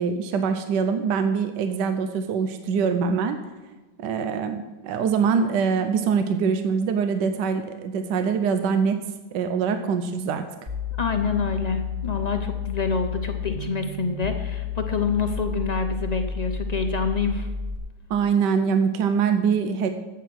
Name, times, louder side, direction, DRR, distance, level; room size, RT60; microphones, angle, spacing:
voice 1, 0.0-3.4 4.0-9.0 9.3-10.4 18.1-19.9, right 6 dB, 75° right, 8 dB, 1.3 m, -23 dB
sound 1, 10.7-17.8, left 6 dB, 20° right, 1.5 m, -31 dB
voice 2, 11.0-17.5, left 5 dB, 45° left, 6 dB, 0.5 m, -27 dB
12.0 x 8.3 x 6.1 m, 1.2 s
omnidirectional pair, 1.9 m